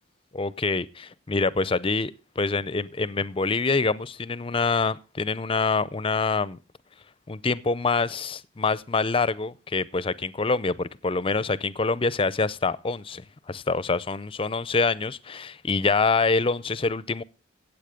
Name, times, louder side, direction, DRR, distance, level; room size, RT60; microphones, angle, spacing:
voice 1, 0.3-6.6 7.3-17.2, left 4 dB, 30° left, 0.5 m, -26 dB
16.0 x 8.2 x 5.0 m
head